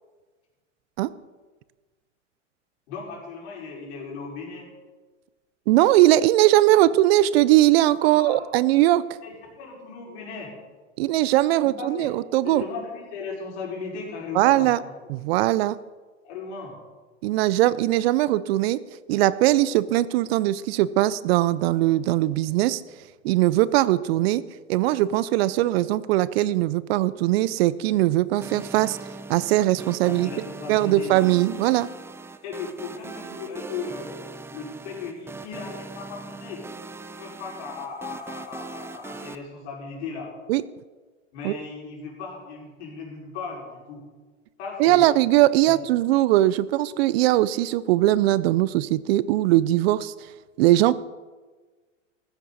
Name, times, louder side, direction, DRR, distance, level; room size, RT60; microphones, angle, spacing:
voice 1, 2.9-4.7 8.0-8.4 9.2-10.5 11.6-12.1 12.4-14.9 16.2-16.8 30.1-31.1 32.4-34.1 34.5-36.6 37.2-40.3 41.3-44.0 44.6-45.1, left 5 dB, 60° left, -2 dB, 5.3 m, -36 dB
voice 2, 5.7-9.1 11.0-12.6 14.3-14.8 15.1-15.8 17.2-18.8 19.1-22.8 23.2-24.4 24.7-29.0 29.3-30.3 30.7-31.9 40.5-40.6 41.4-41.6 44.8-50.1 50.6-50.9, right 15 dB, 55° right, 18 dB, 0.6 m, -20 dB
sound 1, 28.4-39.4, right 3 dB, 5° right, 0.5 m, -40 dB
15.5 x 14.0 x 4.1 m, 1.3 s
hypercardioid pair, 100°, 38 cm